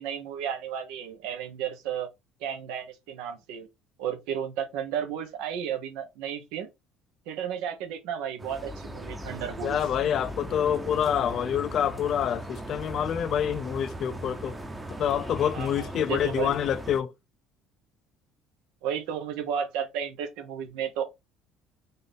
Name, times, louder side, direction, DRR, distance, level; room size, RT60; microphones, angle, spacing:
voice 1, 0.0-2.1 2.4-3.7 4.0-6.7 7.3-9.8 15.5-16.5 18.8-21.0, right 8 dB, 80° right, 1.0 m, -33 dB
sound 1, 8.4-17.0, right 1 dB, 15° right, 0.8 m, -38 dB
voice 2, 9.6-14.6 15.0-17.1, left 9 dB, 55° left, 0.4 m, -27 dB
4.1 x 2.6 x 3.5 m
supercardioid pair, 85°, 0 cm